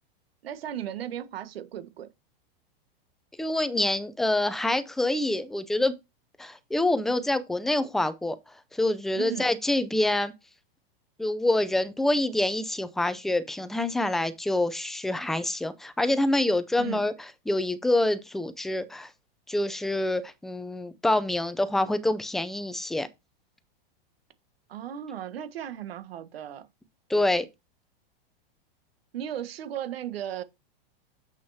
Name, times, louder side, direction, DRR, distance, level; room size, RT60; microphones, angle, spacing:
voice 1, 0.4-2.1 9.1-9.5 16.8-17.1 24.7-26.7 29.1-30.4, right 10 dB, 85° right, 1.5 m, -36 dB
voice 2, 3.4-5.9 6.4-8.4 8.7-10.3 11.2-17.1 17.5-19.1 19.5-23.1 27.1-27.5, left 1 dB, ahead, 0.4 m, -26 dB
7.3 x 6.3 x 2.7 m
supercardioid pair, 145°, 29 cm